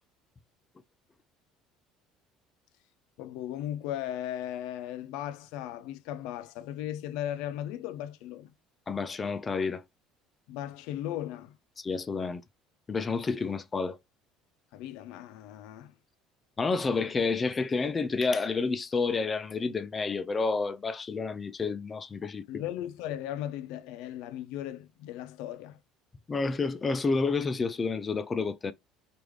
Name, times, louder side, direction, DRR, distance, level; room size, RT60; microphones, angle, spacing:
voice 1, 3.2-8.5 10.5-11.6 14.7-15.9 22.2-25.8, left 12 dB, 80° left, 0.5 m, -37 dB
voice 2, 8.9-9.8 11.8-12.4 12.9-14.0 16.6-22.6 26.3-28.7, left 4 dB, 20° left, 0.3 m, -29 dB
4.8 x 2.5 x 3.2 m
cardioid pair, 135°, 0 cm